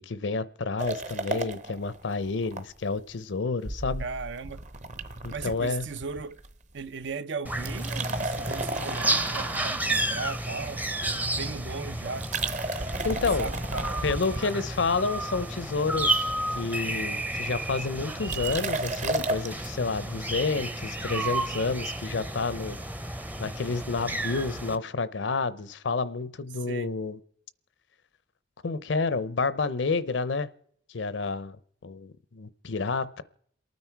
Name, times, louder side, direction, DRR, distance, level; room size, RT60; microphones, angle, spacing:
voice 1, 0.0-4.0 5.2-5.9 13.0-13.5 14.0-22.8 23.4-27.2 28.6-30.5 30.9-31.6 31.8-33.2, left 4 dB, 80° left, 0.7 m, -29 dB
sound 1, 0.8-2.6 3.0-3.1 3.6-6.5 6.8-7.1 7.5-10.9 12.1-15.0 15.5-16.0 16.3-16.4 16.6-16.7 16.9-17.2 18.3-19.6, right 2 dB, 40° right, 0.8 m, -34 dB
voice 2, 4.0-4.6 5.3-6.4 6.7-12.5 13.4-14.1 26.7-26.9, right 4 dB, 75° right, 0.6 m, -37 dB
sound 2, 7.5-24.8, right 1 dB, 10° right, 0.6 m, -32 dB
28.5 x 9.5 x 4.6 m
head